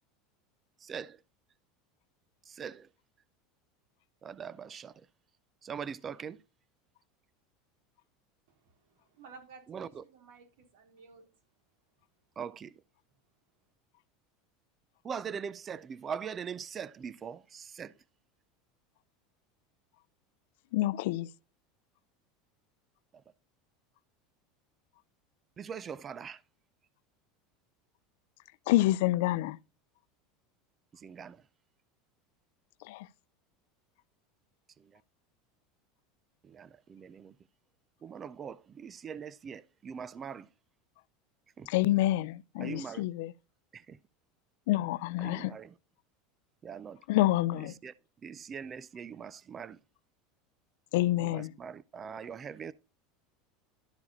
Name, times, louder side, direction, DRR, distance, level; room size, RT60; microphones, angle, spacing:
voice 1, 0.8-1.2 2.5-2.9 4.2-5.0 5.6-6.4 9.7-10.0 12.4-12.8 15.0-18.0 25.6-26.4 30.9-31.4 34.8-35.0 36.4-37.3 38.0-40.5 41.6-41.7 42.6-43.0 43.7-44.0 45.2-45.7 46.6-47.0 47.6-47.9 48.2-49.8 51.2-52.7, right 7 dB, 25° right, 0.4 m, -42 dB
voice 2, 8.5-11.3, right 5 dB, 75° right, 3.7 m, -55 dB
voice 3, 20.7-21.3 28.7-29.6 32.8-33.1 41.7-43.3 44.7-45.5 47.1-47.7 50.9-51.5, left 16 dB, 75° left, 0.4 m, -28 dB
12.5 x 4.8 x 4.3 m
supercardioid pair, 150°, 0 cm